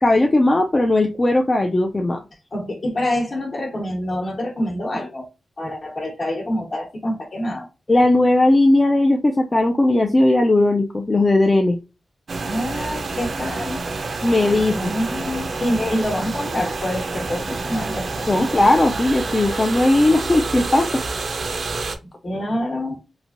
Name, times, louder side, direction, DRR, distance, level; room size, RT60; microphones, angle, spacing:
voice 1, 0.0-2.2 7.9-11.8 14.2-14.9 15.8-15.9 18.3-21.0, left 2 dB, 25° left, 0.4 m, -17 dB
voice 2, 2.5-5.3 5.6-7.7 12.4-13.8 14.7-18.5 22.2-23.0, left 1 dB, 45° left, 1.1 m, -26 dB
sound 1, 12.3-22.0, right 3 dB, 55° right, 0.4 m, -28 dB
3.0 x 2.5 x 2.5 m
cardioid pair, 75°, 0 cm